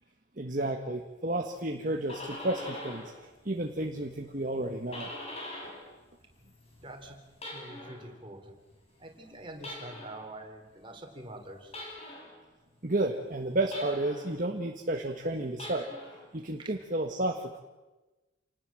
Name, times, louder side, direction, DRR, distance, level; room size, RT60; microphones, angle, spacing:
voice 1, 0.4-5.1 12.8-15.9 16.3-17.6, right 1 dB, 40° right, 3 dB, 1.5 m, -32 dB
sound 1, 1.8-3.2 3.5-5.9 6.2-8.1 9.6-10.3 11.7-12.4 13.7-14.4 15.5-16.3, left 1 dB, 30° left, 6.1 m, -43 dB
voice 2, 6.8-7.2 7.4-8.5 9.0-11.7 16.6-16.7, right 1 dB, 25° right, 3 dB, 3.9 m, -45 dB
28.5 x 19.5 x 7.7 m, 1.1 s
head